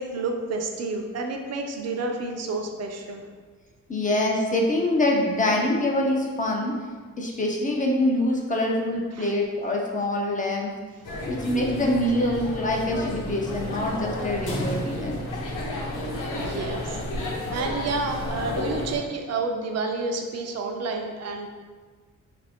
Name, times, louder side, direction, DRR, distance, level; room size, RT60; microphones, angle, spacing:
voice 1, 0.0-3.2 9.2-9.3 16.3-21.5, right 3 dB, 55° right, 3 dB, 0.5 m, -30 dB
voice 2, 3.9-6.8 7.2-10.7 11.3-15.2, left 1 dB, 25° left, -1 dB, 0.4 m, -25 dB
sound 1, 11.0-19.0, left 1 dB, 70° left, 0.8 m, -31 dB
3.3 x 2.5 x 3.4 m, 1.5 s
cardioid pair, 130°, 32 cm